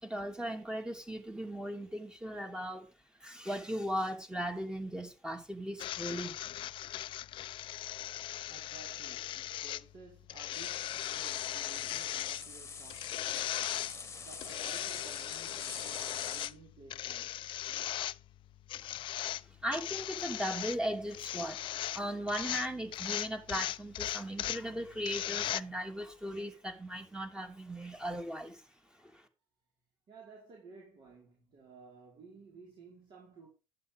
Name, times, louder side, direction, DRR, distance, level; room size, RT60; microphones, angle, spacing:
voice 1, 0.0-2.9 3.2-6.4 18.8-18.9 19.5-28.7 29.0-29.3, equal, 5° right, 2.9 m, -38 dB
sound 1, 5.8-25.6, left 13 dB, 50° left, 0.5 m, -38 dB
voice 2, 8.5-13.9 14.2-17.5 30.1-33.5, right 4 dB, 45° right, 4.8 m, -55 dB
sound 2, 10.5-16.5, left 5 dB, 25° left, 1.6 m, -46 dB
11.5 x 9.2 x 3.7 m
hypercardioid pair, 75°, 11 cm